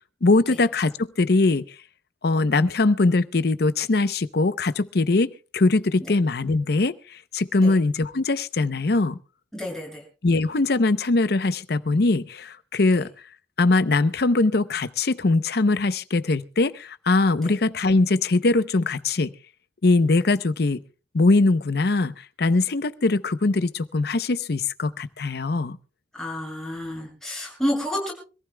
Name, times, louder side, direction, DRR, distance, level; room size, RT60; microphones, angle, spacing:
voice 1, 0.2-1.7 2.2-7.0 7.3-9.2 10.2-13.1 13.6-19.3 19.8-20.8 21.1-25.8, left 3 dB, 65° left, 14 dB, 0.7 m, -21 dB
voice 2, 9.5-10.0 12.9-13.0 17.4-17.5 26.1-28.1, equal, 5° left, -2 dB, 7.1 m, -30 dB
26.0 x 15.0 x 2.2 m, 0.35 s
head